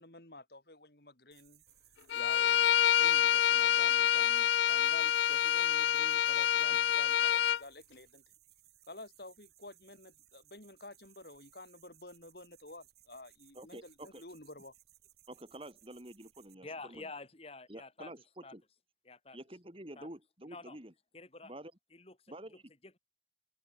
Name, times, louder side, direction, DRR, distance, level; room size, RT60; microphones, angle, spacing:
voice 1, 0.0-1.6 2.1-8.2 8.9-14.7, left 2 dB, 60° left, 5.5 m, -51 dB
sound 1, 1.3-16.5, right 13 dB, 65° right, 7.1 m, -64 dB
Bowed string instrument, 2.1-7.6, left 11 dB, 80° left, 0.3 m, -27 dB
voice 2, 13.5-14.2 15.3-17.1 17.7-18.2 18.5-18.6 19.3-20.9 21.4-21.7 22.3-22.6, right 1 dB, 30° right, 4.5 m, -48 dB
voice 3, 16.6-18.1 18.4-18.5 19.0-19.4 19.9-20.1 20.5-20.8 21.1-21.5 21.9-23.0, left 3 dB, 35° left, 3.1 m, -49 dB
open air
head